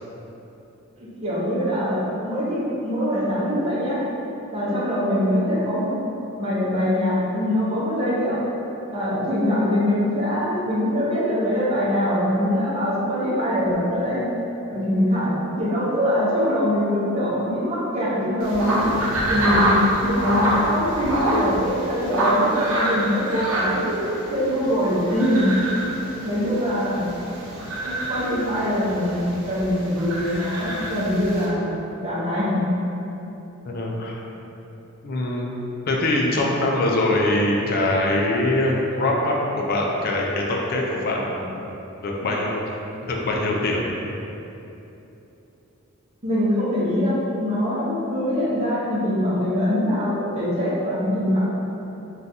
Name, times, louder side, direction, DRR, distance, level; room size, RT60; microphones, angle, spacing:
voice 1, 0.9-4.0 4.5-6.0 6.3-8.4 8.9-14.3 14.7-18.9 19.3-24.0 24.3-25.5 26.2-27.1 27.7-31.7 32.0-32.6 46.2-51.4, equal, 30° right, -9 dB, 0.6 m, -23 dB
sound 1, 18.4-31.5, right 1 dB, 75° right, 0.7 m, -26 dB
voice 2, 33.7-34.2 35.0-35.5 35.9-41.6 42.0-42.6 43.0-43.8, left 1 dB, 45° left, -2 dB, 0.4 m, -23 dB
3.8 x 2.3 x 2.6 m, 3.0 s
head